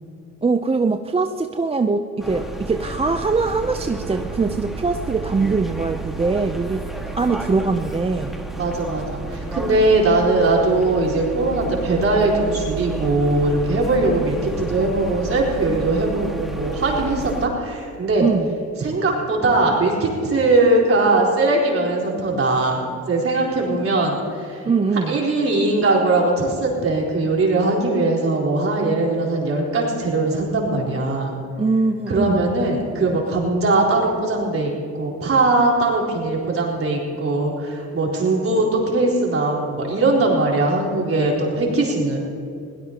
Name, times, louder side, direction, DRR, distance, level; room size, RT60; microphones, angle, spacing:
voice 1, 0.4-6.9 7.1-8.4 18.2-18.5 24.6-25.2 31.6-32.5, right 4 dB, 20° right, 7 dB, 0.6 m, -22 dB
sound 1, 2.2-17.5, right 4 dB, ahead, 1.7 m, -31 dB
voice 2, 8.6-18.3 18.8-24.7 25.1-31.4 32.1-42.2, right 2 dB, 45° right, -3 dB, 4.2 m, -20 dB
21.5 x 17.5 x 2.9 m, 2.6 s
cardioid pair, 90°, 30 cm